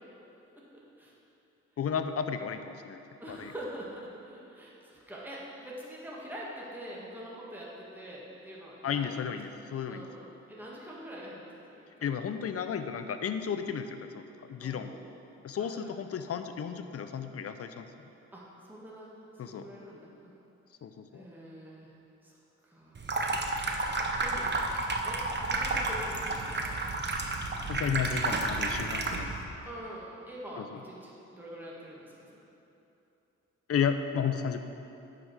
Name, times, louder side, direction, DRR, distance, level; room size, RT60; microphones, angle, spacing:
voice 1, 1.8-3.0 3.3-3.5 8.8-10.1 12.0-15.0 15.4-17.9 19.4-19.7 20.8-21.2 27.7-29.4 30.6-30.8 33.7-34.7, left 7 dB, 55° left, 8 dB, 0.6 m, -33 dB
voice 2, 3.2-9.2 9.9-12.1 14.6-15.0 15.6-15.9 18.3-19.1 19.4-20.3 21.1-21.9 22.2-22.4 22.6-23.0 24.1-24.5 25.0-26.8 29.7-32.3, equal, 5° right, -5 dB, 1.7 m, -45 dB
Water tap faucet / Sink (filling or washing), 23.0-29.4, right 2 dB, 35° right, 0.9 m, -31 dB
9.7 x 5.0 x 6.2 m, 2.8 s
cardioid pair, 80°, 29 cm